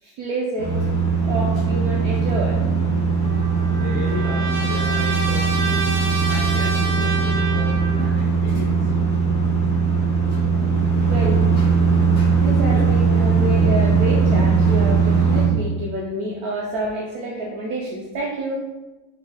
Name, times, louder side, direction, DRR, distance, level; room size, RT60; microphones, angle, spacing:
voice 1, 0.0-0.7 1.2-2.6 11.1-11.4 12.3-18.6, right 1 dB, 75° right, -2 dB, 0.8 m, -28 dB
sound 1, 0.6-15.5, right 5 dB, 45° left, 1.4 m, -19 dB
Trumpet, 3.2-8.1, right 3 dB, 55° right, 1.3 m, -28 dB
voice 2, 3.7-5.5 6.3-9.0 12.7-12.9, left 3 dB, 75° left, -5 dB, 1.4 m, -35 dB
3.8 x 3.5 x 3.5 m, 1.2 s
omnidirectional pair, 2.1 m